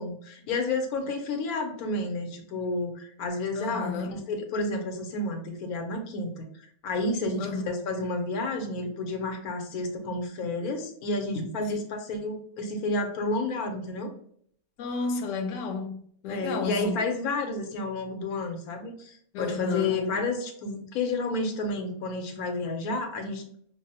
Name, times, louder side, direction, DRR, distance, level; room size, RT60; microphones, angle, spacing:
voice 1, 0.0-6.5 6.8-14.1 16.3-23.4, left 2 dB, 90° left, 1.2 m, -31 dB
voice 2, 3.5-4.2 7.4-7.6 11.7-11.8 14.8-17.0 19.3-20.0, left 4 dB, 70° left, 0.9 m, -32 dB
5.6 x 2.0 x 2.7 m
omnidirectional pair, 1.5 m